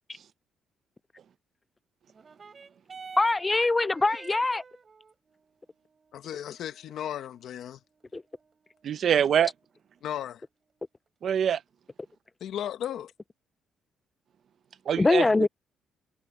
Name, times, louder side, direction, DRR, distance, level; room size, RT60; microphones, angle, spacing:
sound 1, 2.1-11.1 11.9-12.0, right 5 dB, 40° right, 5.2 m, -52 dB
voice 1, 3.2-4.6 8.1-8.2 15.0-15.5, left 3 dB, 20° left, 0.5 m, -23 dB
voice 2, 6.1-7.8 10.0-10.4 12.4-13.1, left 10 dB, 75° left, 1.4 m, -35 dB
voice 3, 8.8-9.5 11.2-11.6 14.9-15.5, right 8 dB, 60° right, 0.9 m, -24 dB
cardioid pair, 90°, 0 cm